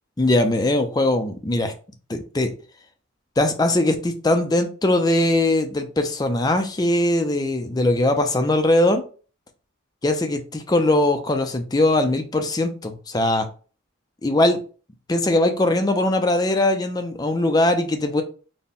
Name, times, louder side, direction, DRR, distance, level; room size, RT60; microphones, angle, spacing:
voice 1, 0.2-1.7 2.1-2.5 3.4-9.0 10.0-13.5 14.2-14.6 15.1-18.2, left 1 dB, 20° left, 7 dB, 0.4 m, -20 dB
4.0 x 2.1 x 3.6 m, 0.37 s
head